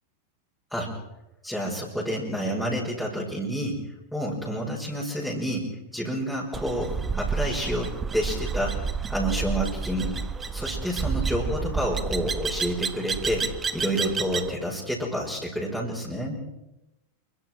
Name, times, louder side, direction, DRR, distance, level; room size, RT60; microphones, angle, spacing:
voice 1, 1.4-3.8 4.1-5.7 5.9-8.8 9.1-10.1 10.5-13.5 13.7-16.4, equal, ahead, -5 dB, 5.9 m, -29 dB
sound 1, 6.5-14.5, right 5 dB, 20° right, 1.3 m, -30 dB
28.0 x 23.0 x 4.7 m, 0.92 s
figure-of-eight pair, 90°, 0 cm